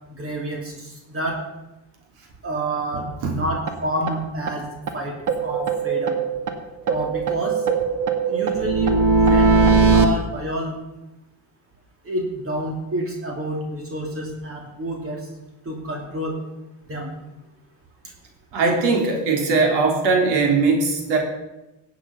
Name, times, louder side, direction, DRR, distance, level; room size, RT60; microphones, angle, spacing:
voice 1, 0.1-1.4 2.4-6.2 6.8-7.9 8.2-10.8 12.0-15.3 15.6-16.3 16.9-17.1, right 1 dB, 35° right, 0 dB, 3.0 m, -29 dB
sound 1, 3.7-3.8 4.1-4.2 4.5-4.6 4.9-5.0 5.3-6.6 6.9-10.1, right 4 dB, 50° right, 1.9 m, -19 dB
voice 2, 18.5-21.2, right 4 dB, 75° right, 2 dB, 3.5 m, -20 dB
16.5 x 8.6 x 5.4 m, 0.98 s
supercardioid pair, 95°, 39 cm